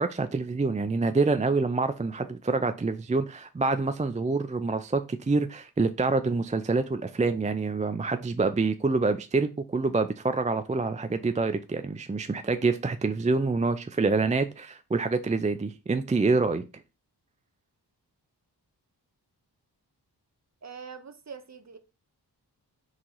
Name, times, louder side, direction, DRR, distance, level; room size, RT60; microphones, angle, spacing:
voice 1, 0.0-16.6, right 3 dB, 20° right, 0.4 m, -26 dB
voice 2, 20.6-21.8, right 6 dB, 40° right, 0.9 m, -43 dB
4.8 x 3.7 x 5.4 m
wide cardioid pair, 95°, 42 cm